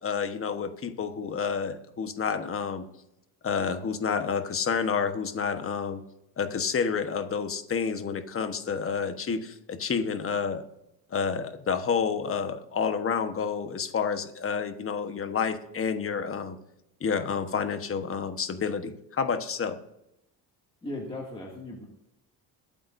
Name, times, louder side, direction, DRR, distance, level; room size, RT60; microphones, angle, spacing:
voice 1, 0.0-2.8 3.4-6.0 6.4-10.6 11.1-16.6 17.0-19.8, left 6 dB, 35° left, 8 dB, 1.3 m, -29 dB
voice 2, 20.8-21.8, left 1 dB, 15° left, -4 dB, 2.3 m, -37 dB
22.0 x 8.8 x 2.7 m, 0.85 s
cardioid pair, 120°, 39 cm